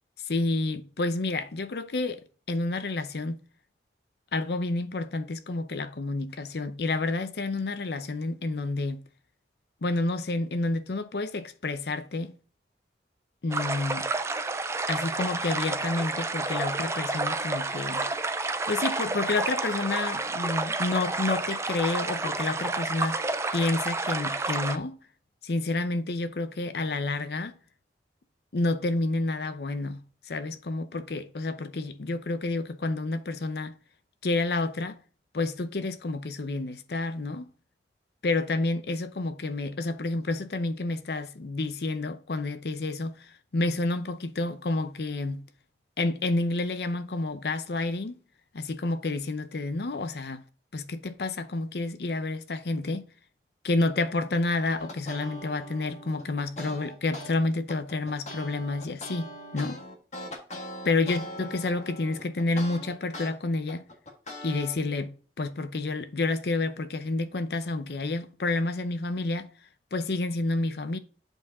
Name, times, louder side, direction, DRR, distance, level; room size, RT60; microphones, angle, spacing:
voice 1, 0.3-3.4 4.3-9.0 9.8-12.3 13.4-14.1 14.9-18.1 18.7-23.2 23.5-25.0 25.4-27.6 28.5-33.8 34.2-35.0 35.3-37.5 38.2-45.4 46.0-48.2 48.5-50.4 50.7-53.1 53.6-59.8 60.8-63.9 64.4-69.5 69.9-71.0, left 2 dB, 65° left, 0.6 m, -29 dB
sound 1, 13.5-24.8, right 3 dB, 15° right, 0.4 m, -30 dB
sound 2, 54.8-57.3 57.7-63.3 63.7-64.8, left 1 dB, 40° left, 1.6 m, -41 dB
8.0 x 4.7 x 3.6 m
head